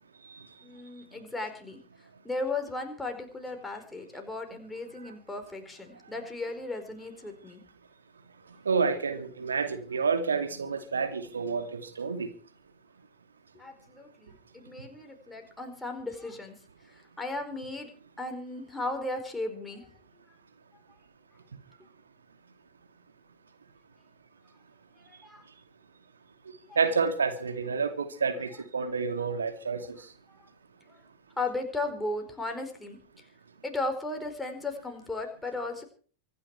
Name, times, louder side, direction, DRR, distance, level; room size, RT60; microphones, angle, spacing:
voice 1, 0.6-1.8 2.2-7.6 13.5-16.5 16.9-17.9 18.2-19.9 25.0-25.4 26.7-26.8 30.3-30.4 30.9-31.0 31.4-33.0 33.6-35.8, left 2 dB, 10° left, 4.6 m, -36 dB
voice 2, 8.6-12.3 26.8-29.9, right 5 dB, 70° right, 2.6 m, -29 dB
25.5 x 10.5 x 4.7 m
figure-of-eight pair, 90°, 0 cm